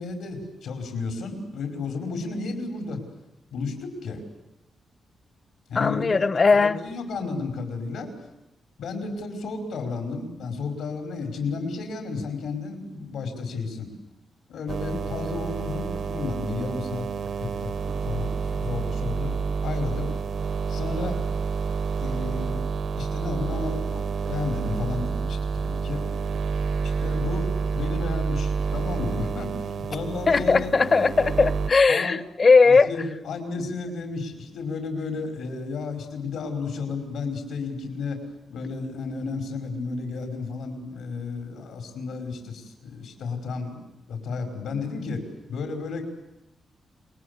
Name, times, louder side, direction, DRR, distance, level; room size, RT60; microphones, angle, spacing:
voice 1, 0.0-3.0 3.5-4.2 5.7-6.3 6.5-8.1 8.8-13.9 14.5-19.4 19.6-20.1 20.7-21.2 22.0-22.6 22.9-26.0 26.8-27.5 27.7-30.7 31.9-32.2 32.6-38.2 38.5-45.2 45.5-46.0, left 4 dB, 85° left, 4 dB, 5.0 m, -32 dB
voice 2, 5.7-6.8 30.3-32.9, left 4 dB, 30° left, 16 dB, 0.9 m, -18 dB
sound 1, 14.7-31.7, right 5 dB, 55° right, 0.9 m, -29 dB
28.0 x 21.5 x 8.2 m, 0.89 s
wide cardioid pair, 150°, 0 cm